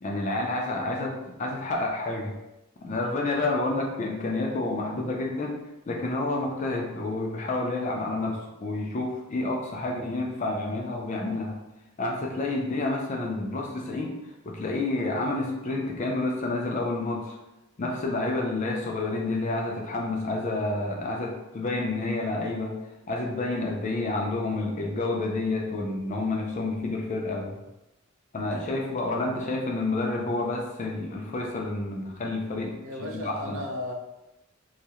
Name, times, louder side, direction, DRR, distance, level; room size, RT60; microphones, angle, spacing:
voice 1, 0.0-2.3 2.8-5.6 5.9-11.6 12.0-14.2 14.4-17.3 17.8-22.8 23.1-27.6 28.3-33.6, left 2 dB, 35° left, 0 dB, 0.4 m, -29 dB
voice 2, 32.8-33.9, left 1 dB, 85° right, 1 dB, 0.5 m, -34 dB
2.3 x 2.1 x 2.8 m, 0.93 s
head